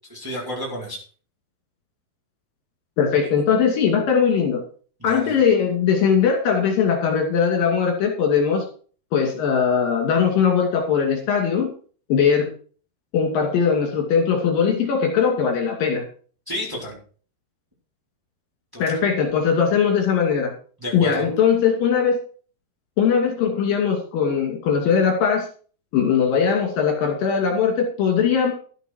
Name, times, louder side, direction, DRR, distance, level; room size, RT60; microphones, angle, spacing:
voice 1, 0.1-1.0 5.0-5.4 16.5-17.0 18.7-19.0 20.8-21.3, equal, 5° right, -4 dB, 4.1 m, -31 dB
voice 2, 3.0-4.6 5.0-8.6 9.1-11.7 12.1-12.5 13.1-16.0 18.8-20.5 20.9-22.2 23.0-25.5 25.9-28.5, left 6 dB, 65° left, 1 dB, 4.2 m, -20 dB
12.5 x 9.1 x 4.6 m, 0.41 s
omnidirectional pair, 4.5 m